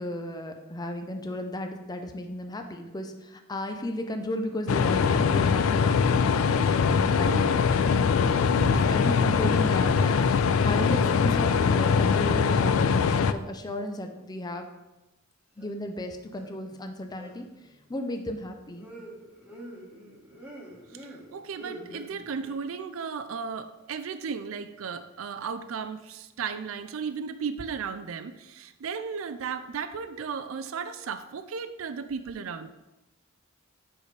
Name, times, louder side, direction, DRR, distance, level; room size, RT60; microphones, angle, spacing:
voice 1, 0.0-6.2 6.9-8.0 8.9-10.3 10.6-14.7 15.6-17.5 17.9-18.9, left 1 dB, 20° left, 5 dB, 0.6 m, -34 dB
sound 1, 4.0-4.7 5.0-5.9 6.7-8.8 9.1-10.4 10.7-11.7 12.0-14.4 15.6-15.8 16.3-16.8 17.1-22.5, right 1 dB, 10° right, 1.4 m, -50 dB
sound 2, 4.7-13.3, left 5 dB, 90° left, 0.4 m, -22 dB
voice 2, 7.2-7.5 8.5-8.9 20.9-32.7, right 6 dB, 85° right, 10 dB, 0.4 m, -35 dB
8.8 x 4.8 x 3.3 m, 1.0 s
head